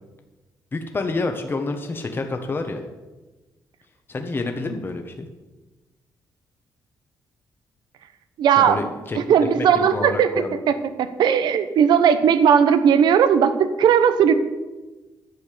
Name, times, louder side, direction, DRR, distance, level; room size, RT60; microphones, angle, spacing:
voice 1, 0.7-2.8 4.1-5.3 8.6-9.4 9.7-10.6, left 3 dB, 30° left, 5 dB, 1.3 m, -28 dB
voice 2, 8.4-8.8 9.1-14.3, right 8 dB, 80° right, 11 dB, 1.0 m, -17 dB
11.0 x 8.1 x 6.8 m, 1.2 s
cardioid pair, 105°, 7 cm